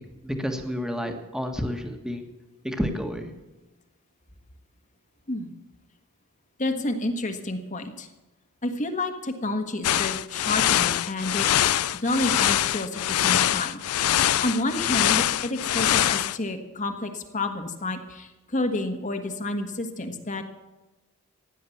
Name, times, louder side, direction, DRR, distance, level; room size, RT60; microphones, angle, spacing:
voice 1, 0.2-2.2 2.6-3.3, equal, 5° right, 4 dB, 1.7 m, -30 dB
voice 2, 6.6-8.1 8.6-13.8 14.1-20.4, left 2 dB, 35° left, 5 dB, 1.5 m, -30 dB
sound 1, 9.8-16.4, left 12 dB, 75° left, 0.5 m, -23 dB
16.0 x 10.0 x 7.2 m, 1.1 s
head